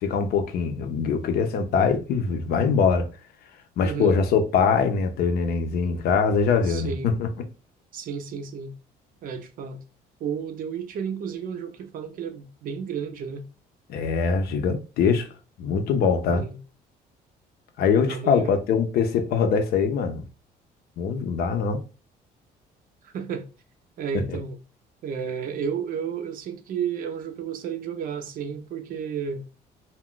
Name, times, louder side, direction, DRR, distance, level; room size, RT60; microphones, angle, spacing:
voice 1, 0.0-3.1 3.8-7.3 13.9-15.3 15.6-16.4 17.8-20.2 21.0-21.8, left 5 dB, 65° left, 0.5 m, -23 dB
voice 2, 3.8-4.2 6.6-7.1 7.9-8.8 9.2-9.8 10.2-13.5 16.3-16.6 18.1-18.5 23.0-23.5 24.0-24.6 25.0-29.4, right 6 dB, 55° right, 0.5 m, -32 dB
2.3 x 2.1 x 3.6 m
cardioid pair, 110°, 17 cm